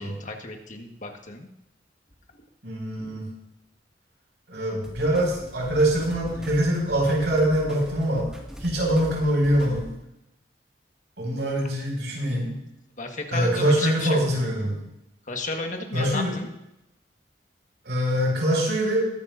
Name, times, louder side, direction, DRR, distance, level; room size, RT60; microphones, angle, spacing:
voice 1, 0.0-1.5 13.0-14.2 15.3-16.5, left 3 dB, 45° left, 3 dB, 1.6 m, -33 dB
voice 2, 2.6-3.3 4.5-8.3 8.6-9.9 11.2-12.5 13.3-14.8 15.9-16.3 17.8-19.0, right 1 dB, 80° right, -2 dB, 5.8 m, -23 dB
sound 1, 4.8-9.9, equal, 5° right, 2.0 m, -41 dB
21.5 x 11.0 x 2.7 m, 0.85 s
head